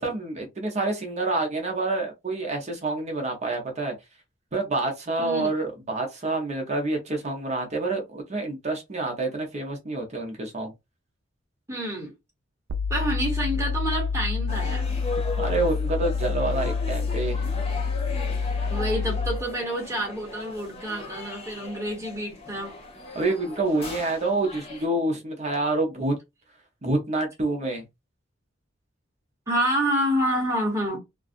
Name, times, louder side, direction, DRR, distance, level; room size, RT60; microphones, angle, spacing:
voice 1, 0.0-3.9 4.5-10.7 15.4-17.5 23.1-26.2 26.8-27.8, right 2 dB, 35° right, 0.7 m, -27 dB
voice 2, 5.2-5.5 11.7-12.1 12.9-14.9 18.7-22.7 29.5-31.0, equal, 15° right, 1.1 m, -28 dB
sound 1, 12.7-19.5, left 5 dB, 70° right, 0.4 m, -27 dB
sound 2, 14.5-24.9, left 2 dB, 30° left, 0.7 m, -38 dB
2.4 x 2.3 x 2.5 m
head